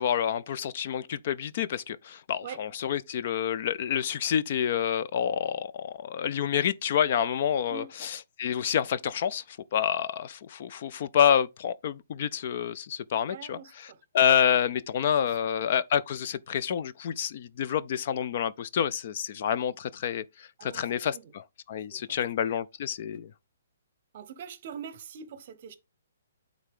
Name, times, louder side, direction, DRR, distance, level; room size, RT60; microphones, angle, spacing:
voice 1, 0.0-9.4 9.7-13.6 14.1-20.2 20.6-21.4 21.7-23.3, left 8 dB, 35° left, 0.3 m, -28 dB
voice 2, 13.3-14.0 15.2-15.4 20.6-21.3 21.9-22.2 24.1-25.8, right 8 dB, 35° right, 0.8 m, -43 dB
8.8 x 3.7 x 3.6 m
hypercardioid pair, 170°, 0 cm